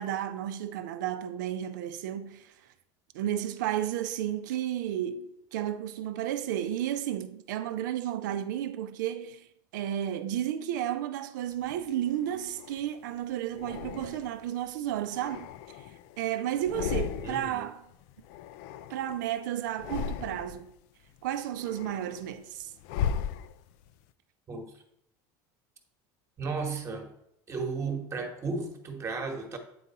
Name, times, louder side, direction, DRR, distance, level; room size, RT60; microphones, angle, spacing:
voice 1, 0.0-2.5 3.1-9.5 9.7-15.5 16.2-17.8 18.9-20.7 21.2-22.7, right 11 dB, 90° right, 0.6 m, -32 dB
sound 1, 11.6-12.9 13.5-14.5 15.0-16.2 16.5-17.6 17.9-19.3 19.7-20.7 21.2-23.9, left 8 dB, 70° left, 0.4 m, -37 dB
voice 2, 17.2-17.7 24.5-24.7 26.4-27.1 27.5-29.6, right 4 dB, 30° right, 1.2 m, -34 dB
8.5 x 3.9 x 4.1 m
supercardioid pair, 120°, 10 cm